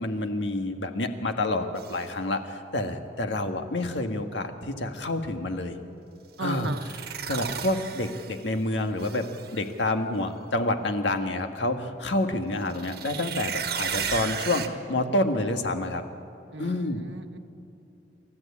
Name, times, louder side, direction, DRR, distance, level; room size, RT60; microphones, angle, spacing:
voice 1, 0.0-5.8 6.4-6.7 7.3-9.2 9.5-16.0 16.6-17.0, left 2 dB, 75° left, 6 dB, 1.7 m, -28 dB
sound 1, 1.8-2.0 6.5-8.5 9.0-9.6 12.7-14.7, right 7 dB, 55° right, 1.5 m, -34 dB
voice 2, 6.4-6.9 16.5-17.4, right 2 dB, 80° right, 7 dB, 1.4 m, -36 dB
28.5 x 13.5 x 8.6 m, 2.9 s
head